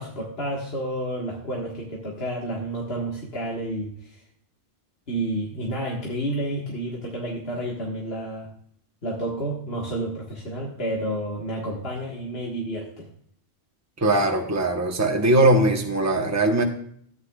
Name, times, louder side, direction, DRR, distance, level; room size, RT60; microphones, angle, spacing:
voice 1, 0.0-4.2 5.1-8.5 9.0-13.1, right 1 dB, 65° left, -3 dB, 1.8 m, -30 dB
voice 2, 14.0-16.6, right 2 dB, 15° right, 3 dB, 1.0 m, -20 dB
14.0 x 9.5 x 2.3 m, 0.63 s
omnidirectional pair, 1.1 m